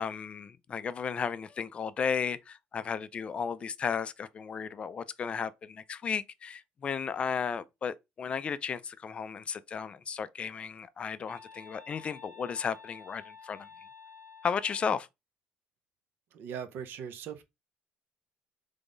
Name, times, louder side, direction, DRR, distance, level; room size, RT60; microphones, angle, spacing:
voice 1, 0.0-13.7 14.4-15.1, left 6 dB, 30° left, 0.3 m, -34 dB
sound 1, 11.3-14.9, left 6 dB, 40° right, 1.4 m, -51 dB
voice 2, 16.3-17.4, right 8 dB, 60° right, 0.7 m, -40 dB
3.6 x 3.4 x 3.8 m
cardioid pair, 160°, 4 cm